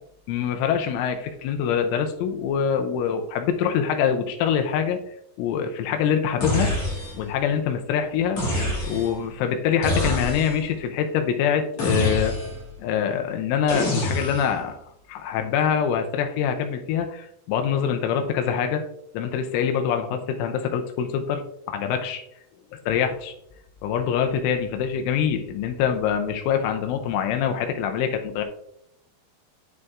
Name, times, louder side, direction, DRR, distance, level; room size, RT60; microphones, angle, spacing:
voice 1, 0.3-5.0 5.4-6.7 7.1-8.4 8.8-12.3 12.8-14.8 15.1-18.8 19.1-22.2 22.9-23.3 23.8-28.4, left 8 dB, 90° left, 5 dB, 3.2 m, -24 dB
sound 1, 6.4-7.3 8.4-9.2 9.8-10.7 11.8-12.7 13.7-14.6, left 1 dB, 45° left, 2.5 m, -26 dB
9.5 x 7.7 x 2.4 m, 0.77 s
omnidirectional pair, 5.5 m